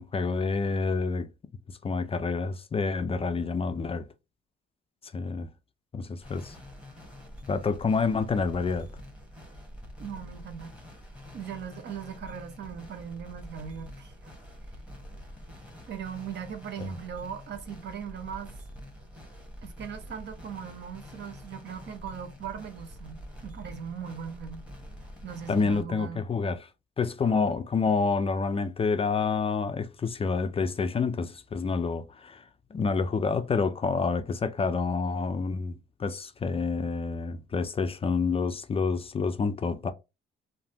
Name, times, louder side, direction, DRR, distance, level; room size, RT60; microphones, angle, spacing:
voice 1, 0.0-1.3 1.7-4.1 5.0-5.5 5.9-6.6 7.5-8.9 16.8-16.9 25.5-26.7 27.0-35.7 36.0-39.9, left 4 dB, 30° left, 0.3 m, -28 dB
sound 1, 6.2-25.8, equal, 5° right, 1.1 m, -46 dB
voice 2, 10.0-10.8 11.3-14.3 15.9-18.6 19.6-24.7 25.2-26.2 27.2-27.4, right 8 dB, 60° right, 0.7 m, -39 dB
3.2 x 2.1 x 2.7 m
cardioid pair, 90°, 20 cm